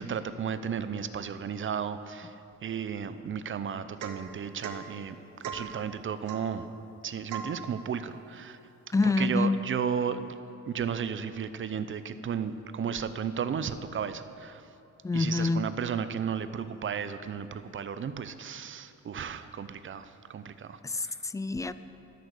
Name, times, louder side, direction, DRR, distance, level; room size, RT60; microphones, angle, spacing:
voice 1, 0.0-2.4 2.6-5.2 5.5-6.7 7.0-8.6 9.2-10.3 10.7-14.6 15.1-20.8 21.0-21.1, right 7 dB, 40° right, 12 dB, 0.6 m, -34 dB
Domestic sounds home sounds / Chink clink / Drip, 4.0-4.3 4.6-4.9 5.4-5.7 6.3-6.5 7.3-7.6, right 6 dB, 85° right, 1.1 m, -38 dB
voice 2, 8.9-9.6 15.0-15.6 20.8-21.7, left 3 dB, 10° left, 13 dB, 0.3 m, -27 dB
13.0 x 6.6 x 6.6 m, 2.8 s
cardioid pair, 90°, 30 cm